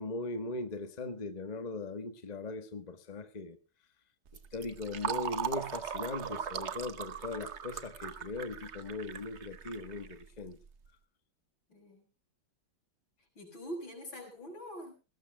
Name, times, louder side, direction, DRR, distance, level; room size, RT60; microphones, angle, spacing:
voice 1, 0.0-3.6 4.5-10.6, left 3 dB, 25° left, 1.3 m, -39 dB
Fill (with liquid), 4.3-10.7, right 8 dB, 45° right, 0.9 m, -39 dB
voice 2, 11.7-12.1 13.4-14.9, equal, 90° left, 7.3 m, -44 dB
20.5 x 18.0 x 2.3 m
omnidirectional pair, 2.1 m